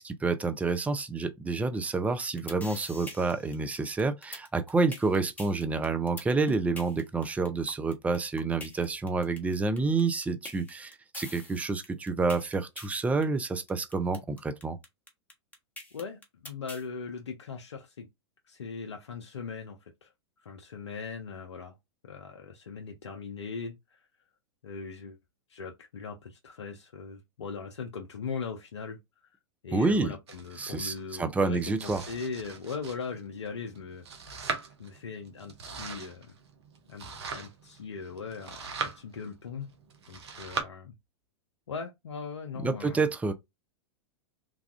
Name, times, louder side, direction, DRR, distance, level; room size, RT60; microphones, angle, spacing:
voice 1, 0.0-14.8 29.7-30.1 30.6-32.0 42.6-43.3, right 3 dB, 10° right, 0.4 m, -29 dB
sound 1, 2.1-16.8, left 2 dB, 10° left, 1.0 m, -44 dB
voice 2, 15.9-18.1 18.4-20.1 20.4-21.8 22.0-24.0 24.6-25.2 25.5-29.0 29.3-29.4 29.6-34.5 34.8-36.3 36.9-37.1 37.3-39.7 40.1-40.9 41.7-43.0, left 5 dB, 80° left, 0.6 m, -39 dB
Domestic sounds home sounds, 30.3-40.6, right 5 dB, 70° right, 0.8 m, -41 dB
3.3 x 2.3 x 2.4 m
hypercardioid pair, 100°, 14 cm